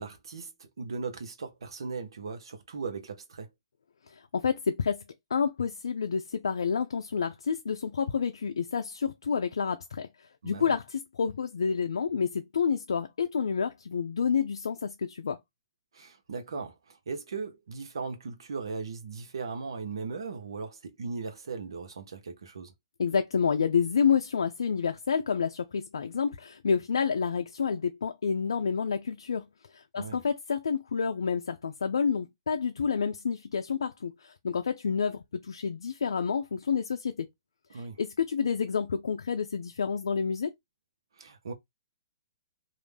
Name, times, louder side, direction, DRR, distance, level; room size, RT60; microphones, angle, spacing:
voice 1, 0.0-3.5 10.4-10.7 15.9-22.7 29.9-30.2 37.7-38.0 41.1-41.5, right 4 dB, 80° right, 0.7 m, -38 dB
voice 2, 4.1-5.0 5.3-10.1 10.4-15.4 23.0-29.5 29.7-37.3 37.7-40.5, left 6 dB, 85° left, 0.4 m, -29 dB
2.4 x 2.1 x 3.2 m
hypercardioid pair, 145°, 2 cm